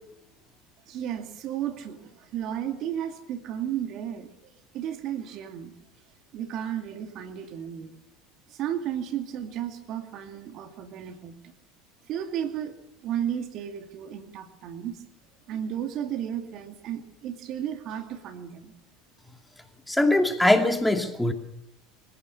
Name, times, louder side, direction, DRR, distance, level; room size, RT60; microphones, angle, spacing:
voice 1, 0.9-4.3 4.7-5.7 6.3-7.9 8.6-11.4 12.1-12.7 13.0-15.0 15.5-18.7, right 10 dB, 55° right, 6 dB, 2.5 m, -33 dB
voice 2, 19.9-21.3, left 1 dB, 5° left, 4 dB, 2.6 m, -21 dB
24.5 x 16.0 x 7.1 m, 0.86 s
hypercardioid pair, 80°, 0 cm